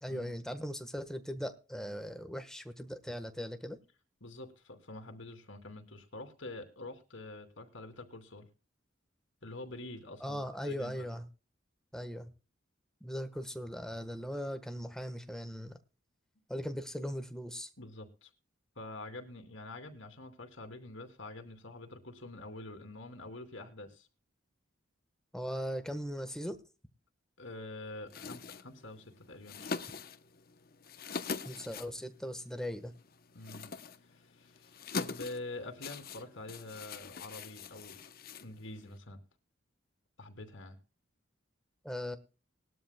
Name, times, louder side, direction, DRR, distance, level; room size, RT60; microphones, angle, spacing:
voice 1, 0.0-3.8 10.2-11.3 11.9-12.3 13.0-15.8 16.5-17.7 25.3-26.6 31.4-32.9 41.8-42.2, equal, 5° left, 1.2 m, -39 dB
voice 2, 4.2-8.5 9.4-11.1 17.8-18.3 18.8-24.1 27.4-29.8 33.3-33.7 34.1-38.0 38.4-39.2 40.2-40.8, left 2 dB, 85° left, 2.7 m, -46 dB
sound 1, 28.1-39.0, left 4 dB, 50° left, 0.8 m, -44 dB
20.0 x 12.5 x 2.2 m
head